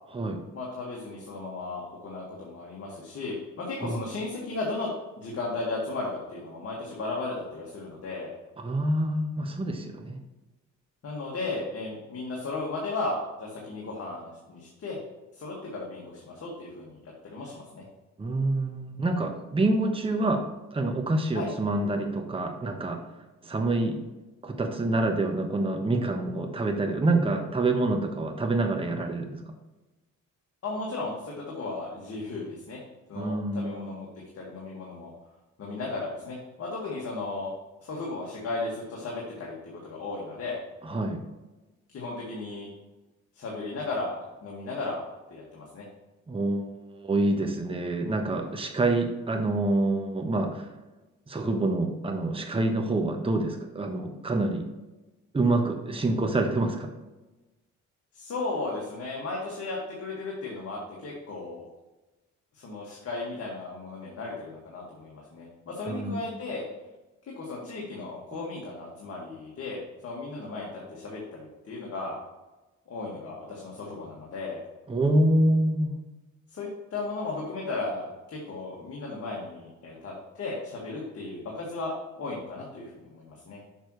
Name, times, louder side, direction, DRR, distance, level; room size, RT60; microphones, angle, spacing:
voice 1, 0.5-4.9 5.2-8.3 11.0-15.0 15.4-17.8 21.3-21.5 30.6-32.8 33.1-34.1 34.3-35.1 35.6-37.6 37.8-40.6 41.9-42.7 43.3-44.2 44.4-45.0 45.3-45.9 58.1-61.6 62.5-66.7 67.4-72.2 72.9-74.6 76.5-83.6, left 3 dB, 55° left, -4 dB, 1.9 m, -35 dB
voice 2, 8.6-10.2 18.2-20.4 20.7-23.0 23.4-24.0 24.4-29.5 33.1-33.9 40.8-41.2 46.3-50.7 51.3-54.6 55.3-56.9 65.9-66.2 68.3-68.4 74.9-75.9, right 2 dB, 20° right, 3 dB, 1.0 m, -27 dB
6.7 x 6.2 x 3.2 m, 1.1 s
cardioid pair, 90°, 30 cm